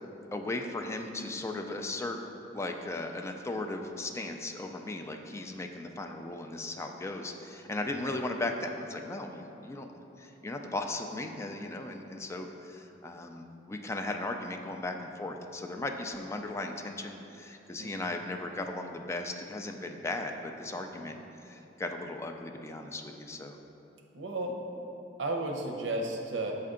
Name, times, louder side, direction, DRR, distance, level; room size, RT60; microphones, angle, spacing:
voice 1, 0.3-2.2 2.5-9.9 10.2-21.2 21.4-23.6, left 2 dB, 15° left, 4 dB, 0.3 m, -37 dB
voice 2, 7.8-8.2 17.8-18.1 24.1-24.6 25.2-26.6, right 2 dB, 75° right, 1 dB, 0.7 m, -34 dB
6.6 x 4.3 x 3.7 m, 2.9 s
head